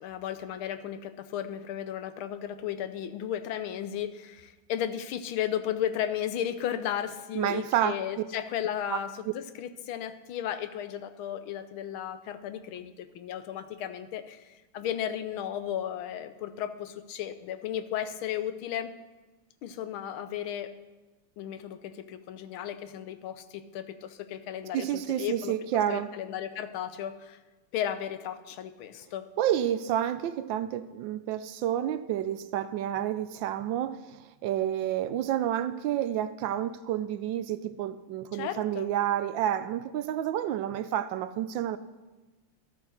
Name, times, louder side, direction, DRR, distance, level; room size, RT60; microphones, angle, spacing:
voice 1, 0.0-18.9 19.6-20.7 21.4-25.5 25.9-27.4 27.7-29.3 38.3-38.9, left 10 dB, 85° left, 11 dB, 1.6 m, -34 dB
voice 2, 7.4-8.0 8.9-9.0 24.7-26.1 29.4-41.8, right 11 dB, 75° right, 13 dB, 1.2 m, -29 dB
13.5 x 8.7 x 6.4 m, 1.2 s
omnidirectional pair, 2.3 m